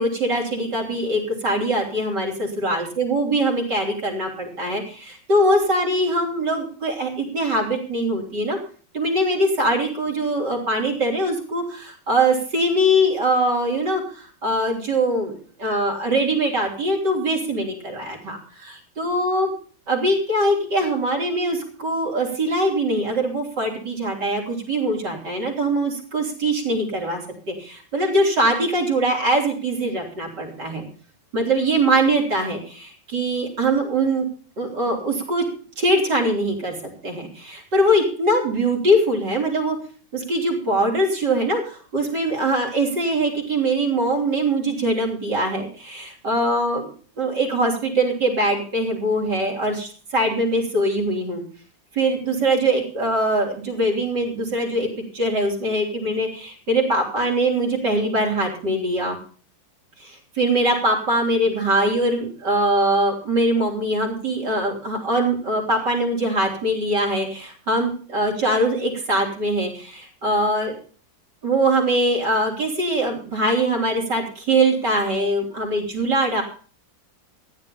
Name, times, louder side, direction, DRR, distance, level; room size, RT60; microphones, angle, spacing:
voice 1, 0.0-8.6 8.9-19.5 19.9-30.8 31.3-34.3 34.6-35.4 35.8-39.8 40.1-46.9 47.2-51.4 52.0-54.9 55.1-59.2 60.0-70.7 71.4-76.4, right 1 dB, 65° right, 2 dB, 4.7 m, -22 dB
15.0 x 10.5 x 5.5 m, 0.41 s
omnidirectional pair, 2.0 m